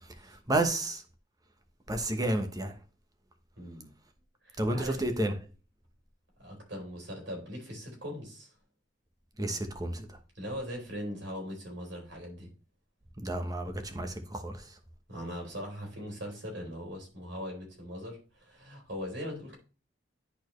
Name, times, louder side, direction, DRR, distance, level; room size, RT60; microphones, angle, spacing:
voice 1, 0.5-1.0 1.9-2.7 4.6-5.3 9.4-10.1 13.2-14.5, right 1 dB, 20° right, 1.0 m, -30 dB
voice 2, 3.6-3.9 4.4-5.1 6.4-8.5 10.4-12.5 15.1-19.6, equal, 75° right, 3.5 m, -40 dB
10.5 x 4.4 x 3.1 m
head